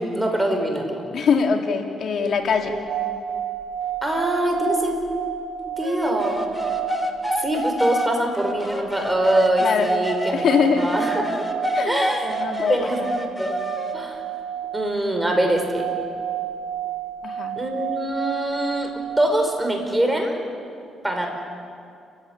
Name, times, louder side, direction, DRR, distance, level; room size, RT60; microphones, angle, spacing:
voice 1, 0.0-1.0 4.0-5.0 5.7-6.4 7.4-10.4 10.8-11.4 11.9-12.3 12.7-13.0 13.4-13.5 13.9-14.2 14.7-15.8 17.6-18.9 19.2-20.4 21.0-21.3, right 1 dB, 10° right, 3 dB, 5.3 m, -23 dB
voice 2, 1.1-2.8 9.6-9.9 10.3-10.9 11.7-13.1 17.2-17.5, left 6 dB, 60° left, 4 dB, 2.2 m, -22 dB
sound 1, 2.6-19.8, right 10 dB, 90° right, 2.3 m, -31 dB
sound 2, 5.8-10.4 10.8-13.9, left 1 dB, 10° left, 2.5 m, -28 dB
29.5 x 16.0 x 9.7 m, 2.4 s
cardioid pair, 90°, 0 cm